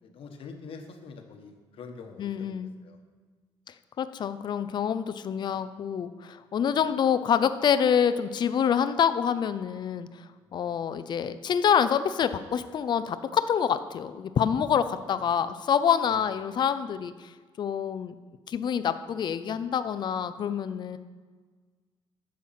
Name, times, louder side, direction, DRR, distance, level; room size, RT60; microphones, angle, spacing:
voice 1, 0.0-3.0 6.7-6.8 10.5-10.9 16.1-16.3, left 4 dB, 65° left, 4 dB, 1.3 m, -46 dB
voice 2, 2.2-2.8 4.0-17.3 17.6-18.1 18.5-21.0, left 8 dB, 50° left, 12 dB, 0.5 m, -26 dB
10.5 x 7.2 x 5.8 m, 1.5 s
cardioid pair, 135°, 10 cm